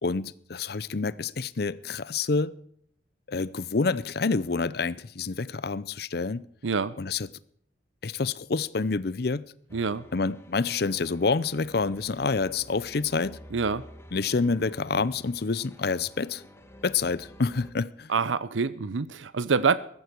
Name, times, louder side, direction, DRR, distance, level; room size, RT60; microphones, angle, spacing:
voice 1, 0.0-2.5 3.3-6.5 7.0-7.3 8.0-9.5 10.1-13.4 14.1-16.4 16.8-18.1, left 4 dB, 55° left, 0.6 m, -28 dB
voice 2, 6.6-6.9 9.7-10.0 13.5-13.8 18.1-19.8, right 5 dB, 90° right, 0.7 m, -26 dB
sound 1, 9.7-17.7, equal, 15° left, 1.5 m, -50 dB
15.0 x 14.0 x 4.5 m
head